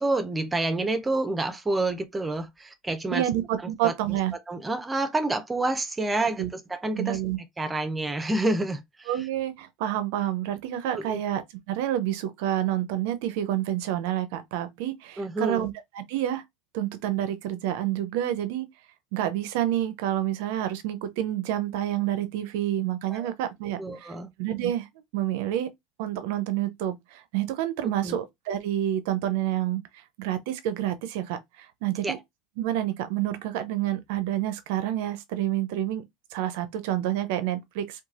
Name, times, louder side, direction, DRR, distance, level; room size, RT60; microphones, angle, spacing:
voice 1, 0.0-3.3 3.6-3.9 4.5-7.2 7.6-9.3 10.9-11.2 15.2-15.7 23.1-23.3 23.8-24.3 28.0-28.2 32.0-32.2, right 2 dB, 15° right, 0.5 m, -28 dB
voice 2, 3.1-4.3 6.2-6.5 6.9-7.4 9.1-16.4 16.7-18.7 19.1-24.1 24.4-24.9 25.1-25.7 26.0-29.8 30.2-32.2 32.6-36.0 36.3-38.0, right 12 dB, 65° right, 0.5 m, -28 dB
3.1 x 2.2 x 2.4 m
hypercardioid pair, 80°, 0 cm